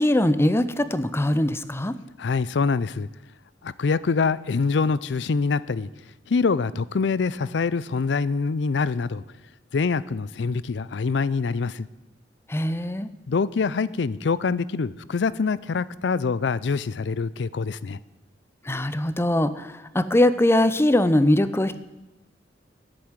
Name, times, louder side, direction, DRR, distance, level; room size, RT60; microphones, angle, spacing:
voice 1, 0.0-2.0 12.5-13.1 18.6-21.8, left 1 dB, 15° left, 0.6 m, -21 dB
voice 2, 2.2-3.1 3.6-5.9 6.3-9.2 9.7-11.9 13.3-18.0, left 4 dB, 70° left, 0.5 m, -25 dB
11.0 x 7.8 x 9.0 m
head